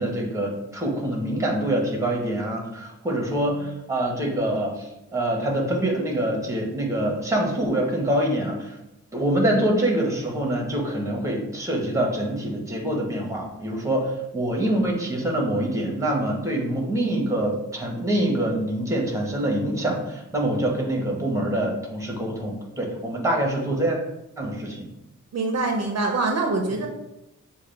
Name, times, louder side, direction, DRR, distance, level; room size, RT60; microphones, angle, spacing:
voice 1, 0.0-8.8 9.1-24.0 24.4-24.9, right 1 dB, 10° right, 0 dB, 1.1 m, -25 dB
voice 2, 25.3-26.9, right 3 dB, 55° right, 2 dB, 0.6 m, -24 dB
6.5 x 2.3 x 3.2 m, 0.88 s
wide cardioid pair, 95°, 31 cm